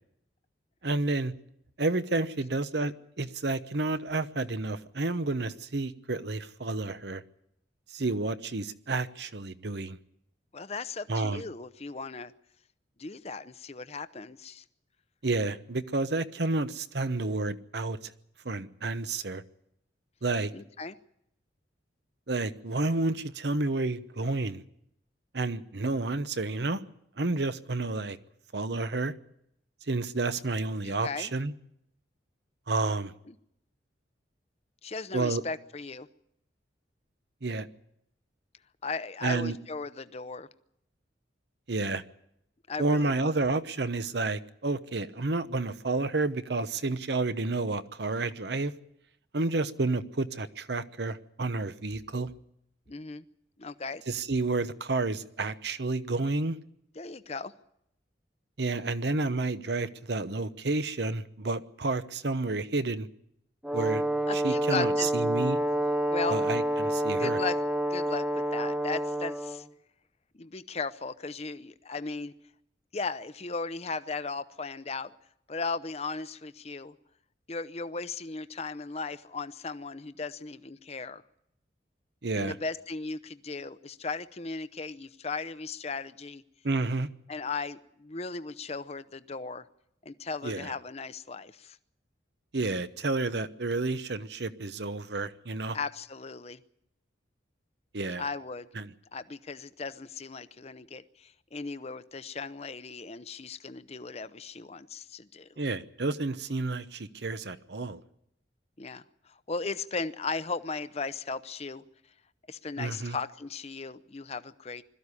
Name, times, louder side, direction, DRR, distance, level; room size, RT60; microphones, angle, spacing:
voice 1, 0.8-1.3 1.8-7.2 7.9-10.0 11.1-11.4 15.2-18.1 18.4-19.4 20.2-20.5 22.3-24.6 25.3-26.8 27.2-28.2 28.5-29.1 29.9-31.5 32.7-33.1 35.1-35.4 37.4-37.7 39.2-39.6 41.7-42.0 42.8-48.7 49.3-52.3 54.1-56.6 58.6-63.1 63.7-64.1 64.3-65.6 66.3-67.4 82.2-82.5 86.6-87.1 90.4-90.7 92.5-95.8 97.9-98.3 98.7-98.9 105.6-108.0 112.8-113.2, right 3 dB, 60° right, 13 dB, 0.9 m, -30 dB
voice 2, 10.5-12.3 13.0-14.6 20.5-21.0 30.8-31.3 33.3-33.4 34.8-36.1 38.8-40.5 42.7-43.2 52.9-53.2 53.6-54.0 57.0-57.5 64.3-65.1 66.1-66.4 67.2-67.6 67.9-69.7 70.4-72.3 72.9-75.1 75.5-76.9 77.5-81.2 82.3-86.4 87.3-89.6 90.0-91.8 95.7-96.6 98.2-98.7 99.1-105.6 108.8-111.8 112.5-114.8, left 4 dB, 35° left, 13 dB, 0.7 m, -37 dB
Brass instrument, 63.6-69.6, right 1 dB, 5° right, 0.8 m, -28 dB
21.5 x 13.5 x 9.8 m, 0.77 s
head